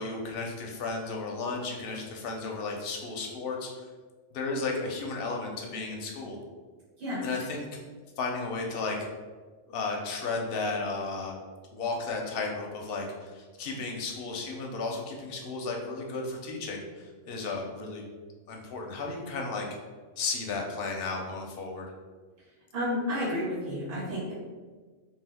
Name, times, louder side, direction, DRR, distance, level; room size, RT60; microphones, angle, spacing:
voice 1, 0.0-3.7 4.3-6.4 7.2-7.7 8.2-9.0 9.7-11.4 11.7-18.0 18.5-19.7 20.2-21.9, left 3 dB, 60° left, 1 dB, 0.7 m, -34 dB
voice 2, 22.7-24.3, left 1 dB, 45° right, -8 dB, 1.3 m, -31 dB
2.6 x 2.5 x 3.4 m, 1.4 s
omnidirectional pair, 1.3 m